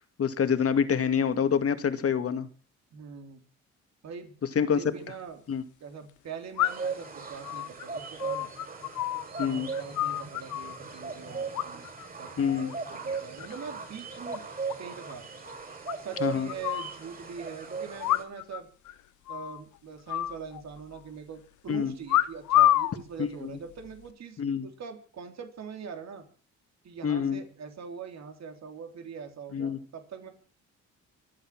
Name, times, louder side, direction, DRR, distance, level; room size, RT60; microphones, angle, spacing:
voice 1, 0.2-2.5 4.6-4.8 5.5-5.6 9.4-9.7 12.4-12.7 16.2-16.5 21.7-21.9 23.2-23.5 24.4-24.7 27.0-27.4 29.5-29.8, left 7 dB, 50° left, 2.2 m, -26 dB
voice 2, 2.9-3.4 4.0-5.4 5.8-8.5 9.4-11.9 12.2-14.5 14.8-15.3 16.0-18.7 19.3-26.3 26.8-30.3, right 6 dB, 60° right, 3.7 m, -43 dB
sound 1, 4.8-4.9 6.6-7.0 7.4-9.5 9.7-10.8 11.5-12.1 12.4-12.7 13.1-13.7 14.0-14.1 14.3-14.4 14.7-14.8 15.1-15.2 15.9-16.9 18.0-18.6 18.9-19.0 19.3-19.6 20.1-21.0 22.1-22.9 23.7-24.1, left 13 dB, 75° left, 0.9 m, -28 dB
sound 2, 6.6-18.2, right 5 dB, 30° right, 6.1 m, -38 dB
24.5 x 8.8 x 6.1 m
cardioid pair, 90°, 30 cm